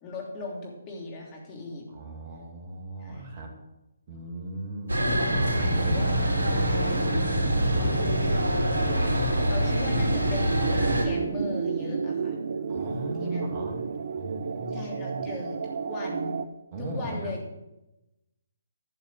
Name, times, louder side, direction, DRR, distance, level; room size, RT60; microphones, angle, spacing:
voice 1, 0.0-1.9 3.0-3.3 5.8-6.1 7.8-8.0 8.7-9.0 9.5-12.3 13.2-13.4 14.7-16.4 16.8-17.4, left 2 dB, 25° left, -2 dB, 3.1 m, -38 dB
voice 2, 1.9-3.5 4.1-6.1 6.5-6.6 7.4-8.8 12.7-13.8 14.2-15.3 16.7-17.3, right 1 dB, 35° right, 2 dB, 2.4 m, -37 dB
sound 1, 4.9-11.1, equal, 75° right, 3.2 m, -25 dB
sound 2, 5.0-16.5, right 5 dB, 55° right, 0.7 m, -33 dB
12.0 x 7.0 x 6.2 m, 0.96 s
figure-of-eight pair, 140°, 0 cm